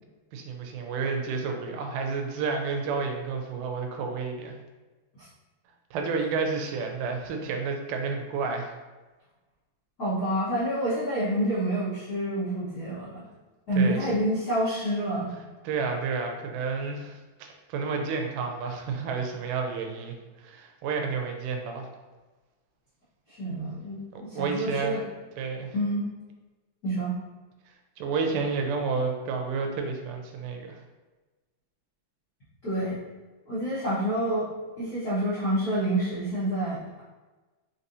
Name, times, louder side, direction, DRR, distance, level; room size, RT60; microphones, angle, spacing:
voice 1, 0.3-4.5 5.9-8.7 13.8-14.0 15.6-21.9 24.1-25.0 25.4-25.7 28.0-30.8, right 4 dB, 85° right, 3 dB, 2.1 m, -30 dB
voice 2, 10.0-13.2 13.7-15.3 23.3-25.0 25.7-26.1 26.8-27.2 32.6-33.0 33.4-34.5 34.8-37.0, right 1 dB, 70° left, -13 dB, 0.8 m, -28 dB
5.2 x 2.7 x 2.6 m, 1.2 s
omnidirectional pair, 3.6 m